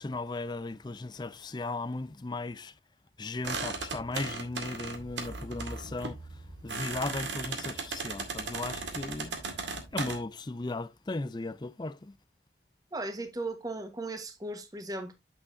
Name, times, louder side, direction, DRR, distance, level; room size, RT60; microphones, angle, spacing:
voice 1, 0.0-2.7 3.2-9.4 9.9-12.2, left 2 dB, 25° left, 0.5 m, -36 dB
sound 1, 3.4-10.2, right 4 dB, 80° right, 2.1 m, -37 dB
voice 2, 12.9-15.1, right 2 dB, 20° right, 1.3 m, -37 dB
8.7 x 7.6 x 2.6 m
head